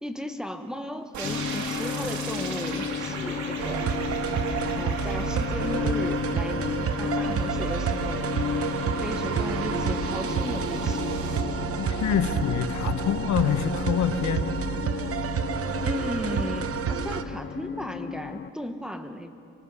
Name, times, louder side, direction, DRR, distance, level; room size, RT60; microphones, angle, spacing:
voice 1, 0.0-3.9 4.7-8.2 9.0-11.0 15.8-19.3, equal, ahead, 6 dB, 1.3 m, -36 dB
sound 1, 1.1-11.4, right 4 dB, 70° right, 2.6 m, -38 dB
sound 2, 1.2-18.5, left 7 dB, 35° left, 0.6 m, -33 dB
sound 3, 3.6-17.2, right 7 dB, 50° right, 1.0 m, -29 dB
voice 2, 11.8-14.5, left 9 dB, 65° left, 10 dB, 1.1 m, -26 dB
25.0 x 19.0 x 5.6 m, 2.6 s
cardioid pair, 90°, 30 cm